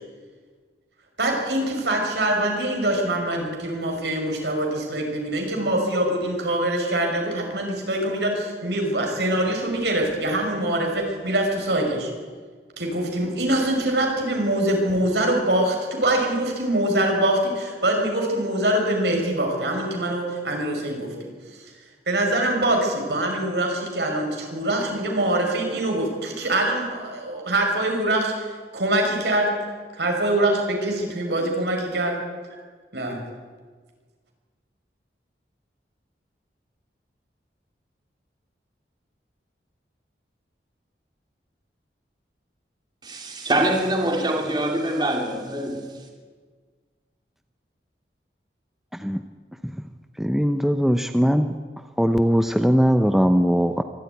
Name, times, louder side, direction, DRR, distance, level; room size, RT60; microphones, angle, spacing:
voice 1, 1.2-12.1 12.8-21.7 22.1-29.6 30.0-32.1 32.9-33.2, right 1 dB, 75° right, 1 dB, 5.6 m, -24 dB
voice 2, 43.0-45.9, right 1 dB, 25° right, 1 dB, 2.9 m, -24 dB
voice 3, 48.9-49.2 49.6-49.7 50.2-51.5 52.0-53.8, equal, ahead, 8 dB, 0.6 m, -20 dB
24.0 x 13.0 x 9.4 m, 1.5 s
head